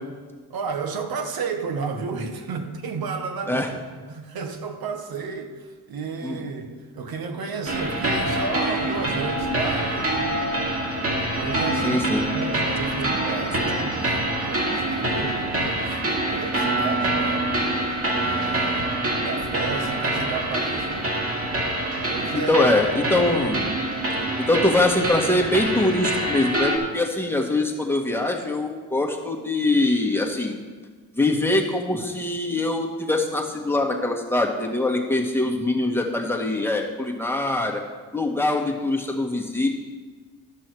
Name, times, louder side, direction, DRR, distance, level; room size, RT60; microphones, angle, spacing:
voice 1, 0.5-3.7 4.1-10.4 11.1-12.1 12.3-17.5 18.2-21.1 22.0-22.6, right 5 dB, 65° right, 5 dB, 1.5 m, -32 dB
sound 1, 7.7-26.8, right 1 dB, 35° right, 2.4 m, -25 dB
voice 2, 11.8-12.2 22.3-23.7 24.5-30.6 31.1-37.8 38.1-39.7, left 2 dB, 5° left, 0 dB, 1.7 m, -23 dB
12.5 x 6.2 x 4.8 m, 1.4 s
supercardioid pair, 70°, 39 cm